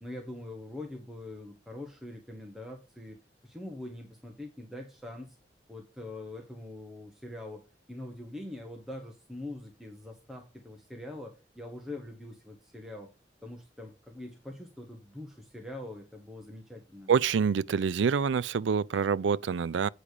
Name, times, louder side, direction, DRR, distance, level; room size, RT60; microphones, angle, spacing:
voice 1, 0.0-3.2 3.4-5.4 5.7-7.6 7.9-13.1 13.4-17.1, left 1 dB, ahead, 1.2 m, -43 dB
voice 2, 17.1-19.9, right 6 dB, 85° right, 0.4 m, -26 dB
8.6 x 4.9 x 6.5 m
head